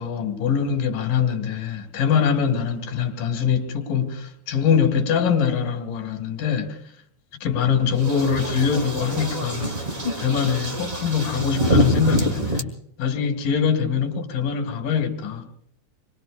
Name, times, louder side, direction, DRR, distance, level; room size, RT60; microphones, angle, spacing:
voice 1, 0.0-6.7 7.4-9.7 10.2-12.7 13.0-15.4, left 7 dB, 85° left, 3.5 m, -23 dB
sound 1, 8.0-12.6, right 1 dB, 30° right, 1.0 m, -25 dB
27.0 x 22.5 x 2.4 m
omnidirectional pair, 3.8 m